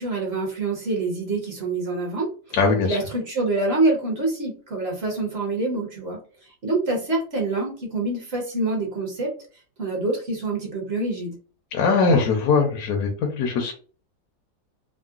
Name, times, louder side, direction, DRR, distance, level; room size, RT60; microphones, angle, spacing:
voice 1, 0.0-6.2 6.6-9.3 9.8-11.4, right 2 dB, 45° right, -1 dB, 1.0 m, -26 dB
voice 2, 2.6-3.0 11.7-13.7, left 4 dB, 70° left, 2 dB, 1.1 m, -21 dB
3.7 x 2.0 x 2.4 m, 0.38 s
omnidirectional pair, 1.8 m